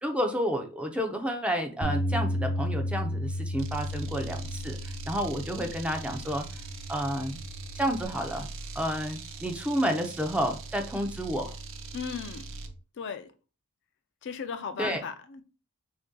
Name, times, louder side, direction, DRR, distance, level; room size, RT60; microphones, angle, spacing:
voice 1, 0.0-6.4 6.9-7.4 7.8-8.5 8.8-11.5 14.8-15.0, equal, 5° right, 0.5 m, -30 dB
Bass guitar, 1.8-8.1, equal, 45° right, 1.0 m, -33 dB
sound 1, 3.6-12.8, right 3 dB, 60° right, 0.5 m, -42 dB
voice 2, 11.9-12.5 13.0-13.3 14.2-15.4, left 6 dB, 55° left, 0.4 m, -36 dB
3.2 x 2.6 x 3.7 m
head